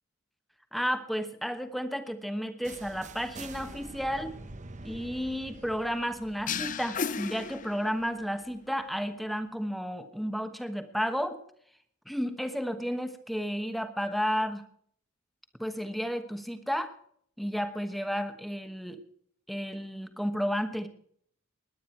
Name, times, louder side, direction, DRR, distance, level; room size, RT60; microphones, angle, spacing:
voice 1, 0.7-4.3 4.8-11.4 12.1-14.6 15.6-16.9 17.4-19.0 19.5-20.9, equal, ahead, 8 dB, 1.2 m, -32 dB
sound 1, 2.6-8.5, right 2 dB, 35° right, 0.8 m, -47 dB
sound 2, 6.5-8.2, left 6 dB, 35° left, 0.6 m, -34 dB
20.0 x 9.7 x 4.5 m, 0.63 s
head